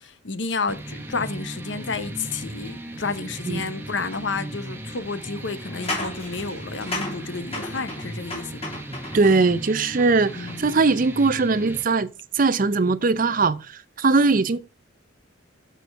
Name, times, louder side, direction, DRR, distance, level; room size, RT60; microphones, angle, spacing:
voice 1, 0.0-8.8 10.3-10.8, left 4 dB, 60° left, 0.9 m, -31 dB
sound 1, 0.7-11.8, right 1 dB, 10° right, 1.0 m, -37 dB
sound 2, 4.1-4.2 5.6-9.5 10.0-10.8, left 2 dB, 30° left, 3.1 m, -34 dB
voice 2, 9.1-12.1 12.3-14.6, right 3 dB, 40° right, 0.5 m, -20 dB
6.8 x 6.4 x 4.6 m
head